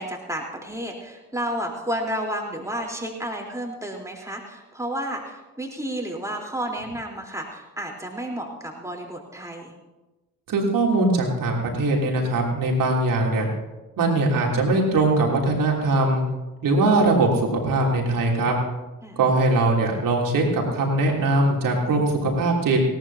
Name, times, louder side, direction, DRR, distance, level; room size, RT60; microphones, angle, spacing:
voice 1, 0.0-9.7 19.0-19.2, right 1 dB, 5° right, 0 dB, 3.8 m, -31 dB
voice 2, 10.5-13.5 14.0-16.2 16.6-18.5 19.2-22.8, right 2 dB, 50° right, 0 dB, 3.3 m, -21 dB
18.5 x 18.0 x 2.9 m, 1.1 s
figure-of-eight pair, 40°, 41 cm